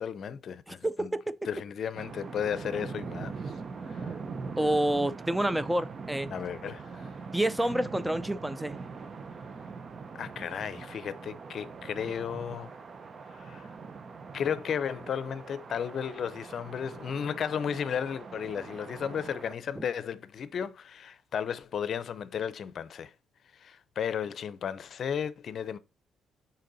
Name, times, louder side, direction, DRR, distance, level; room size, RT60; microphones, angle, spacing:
voice 1, 0.0-1.1 1.4-3.5 3.9-4.2 6.3-7.1 10.2-12.7 13.3-13.7 14.3-23.1 23.5-25.8, left 8 dB, 60° left, 0.6 m, -34 dB
voice 2, 0.7-1.3 4.6-6.3 7.3-8.8 19.8-19.9, right 1 dB, 5° right, 0.5 m, -28 dB
sound 1, 1.9-19.6, right 4 dB, 45° right, 0.7 m, -42 dB
6.5 x 4.3 x 4.0 m
cardioid pair, 90°, 0 cm